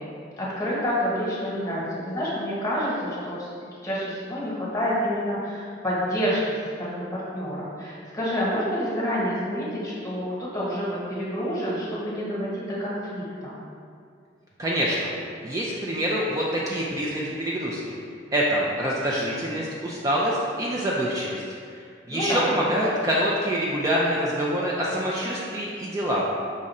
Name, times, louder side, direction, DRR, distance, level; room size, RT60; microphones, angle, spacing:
voice 1, 0.4-3.5 3.8-13.5 22.1-22.4, equal, 20° left, -7 dB, 1.2 m, -28 dB
voice 2, 14.6-15.1 15.4-18.0 18.3-21.4 21.7-21.8 22.1-26.2, equal, 20° right, -5 dB, 0.4 m, -26 dB
5.2 x 2.5 x 4.1 m, 2.3 s
head